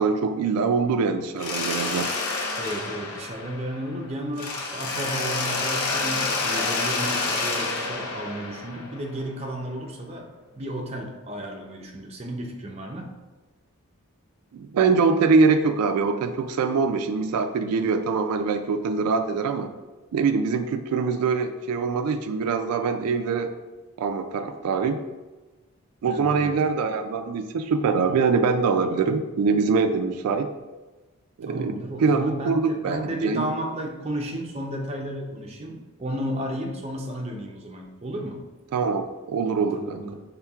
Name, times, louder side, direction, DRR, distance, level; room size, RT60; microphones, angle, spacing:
voice 1, 0.0-2.1 14.5-19.7 20.1-23.5 24.0-25.0 26.0-30.5 31.4-33.5 38.7-40.1, right 4 dB, 90° right, 6 dB, 0.3 m, -23 dB
Mechanisms, 1.4-4.0 4.4-9.2, left 3 dB, 80° left, 0.7 m, -28 dB
voice 2, 2.6-10.3 10.5-13.1 26.1-26.5 31.5-38.4 39.7-40.1, right 1 dB, 30° right, 0 dB, 0.6 m, -33 dB
5.7 x 3.6 x 2.3 m, 1.2 s
head